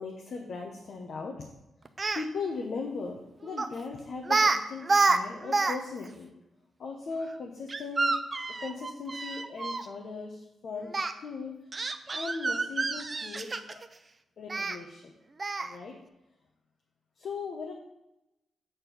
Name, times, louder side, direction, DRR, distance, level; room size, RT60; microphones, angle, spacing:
voice 1, 0.0-1.5 2.1-6.3 6.8-8.2 8.6-11.6 12.1-13.8 14.4-15.1 15.6-16.0 17.2-17.7, left 4 dB, 50° left, 1 dB, 0.9 m, -38 dB
Speech, 1.8-2.2 3.6-3.8 4.2-4.6 4.8-5.8 6.0-6.1 7.7-9.8 10.9-11.1 11.7-13.9 14.5-14.8 15.4-15.7, right 3 dB, 25° right, 0.4 m, -28 dB
7.9 x 4.5 x 6.8 m, 0.91 s
wide cardioid pair, 175°, 0 cm